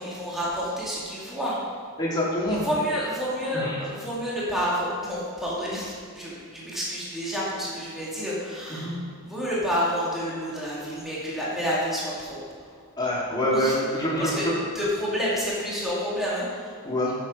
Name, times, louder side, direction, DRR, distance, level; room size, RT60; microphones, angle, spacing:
voice 1, 0.0-1.6 2.5-9.0 9.2-12.4 13.5-14.5 14.7-16.7, equal, ahead, -7 dB, 2.2 m, -29 dB
voice 2, 2.0-2.7 3.5-3.8 8.7-8.9 13.0-14.6 16.8-17.1, equal, 20° left, -6 dB, 2.6 m, -26 dB
9.5 x 7.6 x 5.1 m, 2.1 s
head